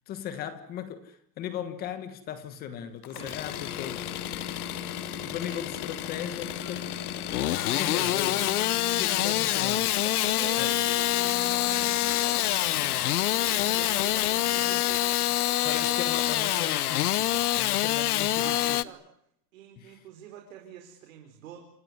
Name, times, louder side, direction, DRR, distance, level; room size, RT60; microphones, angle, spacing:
voice 1, 0.1-4.2 5.2-6.9 7.4-9.9 10.6-10.8 15.6-18.8 19.8-20.0, left 9 dB, 20° left, 1.4 m, -38 dB
Engine starting / Sawing, 3.0-18.8, left 14 dB, 65° left, 1.1 m, -27 dB
sound 1, 3.4-14.8, left 5 dB, 35° left, 6.2 m, -41 dB
voice 2, 9.2-12.5 13.4-16.8 18.2-19.0 19.5-21.6, right 9 dB, 55° right, 4.8 m, -47 dB
28.0 x 18.0 x 9.5 m
supercardioid pair, 170°, 49 cm